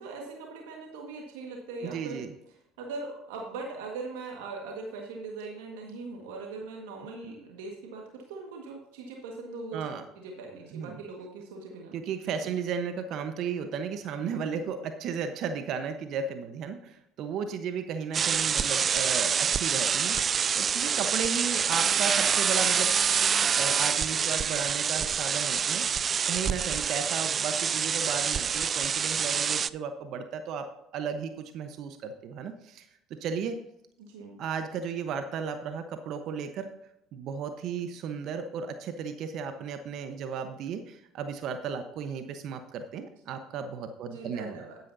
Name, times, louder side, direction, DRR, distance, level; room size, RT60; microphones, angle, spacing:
voice 1, 0.0-2.2 2.8-8.0 8.3-9.9 10.1-12.0 12.4-12.5 34.0-34.4 44.1-44.8, right 3 dB, 85° right, 0 dB, 1.6 m, -40 dB
voice 2, 1.8-2.3 9.7-10.0 10.7-11.0 11.9-20.2 20.6-25.8 26.3-30.6 30.9-32.9 33.2-33.6 34.4-36.7 37.1-44.6, right 6 dB, 60° right, 8 dB, 1.0 m, -34 dB
sound 1, 18.1-29.7, right 7 dB, 40° right, 0.3 m, -26 dB
11.0 x 10.0 x 2.7 m, 0.81 s
hypercardioid pair, 70°, 0 cm